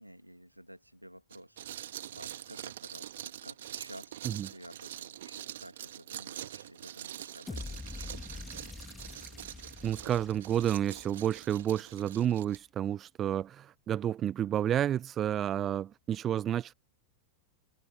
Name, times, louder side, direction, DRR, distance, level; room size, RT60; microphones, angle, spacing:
voice 1, 0.0-8.3, equal, 90° right, 2.5 m, -53 dB
sound 1, 1.3-12.6, right 12 dB, 60° right, 2.2 m, -44 dB
sound 2, 7.5-11.6, left 3 dB, 10° left, 2.1 m, -45 dB
voice 2, 9.8-16.7, right 10 dB, 30° right, 0.5 m, -30 dB
figure-of-eight pair, 90°, 0 cm